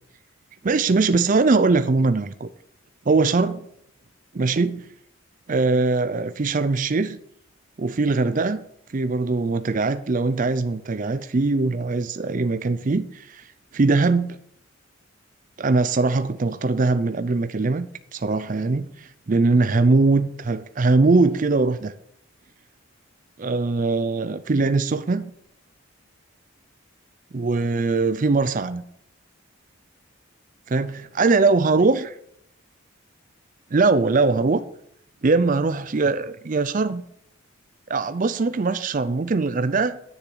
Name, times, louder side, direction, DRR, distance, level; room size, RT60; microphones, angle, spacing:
voice 1, 0.6-2.5 3.1-3.6 4.3-4.9 5.5-7.2 7.8-8.6 8.9-13.5 13.7-14.4 15.6-21.9 23.4-25.3 27.3-28.8 30.7-32.2 33.7-34.6 35.2-37.0 37.9-40.0, right 3 dB, 35° right, 12 dB, 0.4 m, -21 dB
10.0 x 6.8 x 7.8 m, 0.72 s
head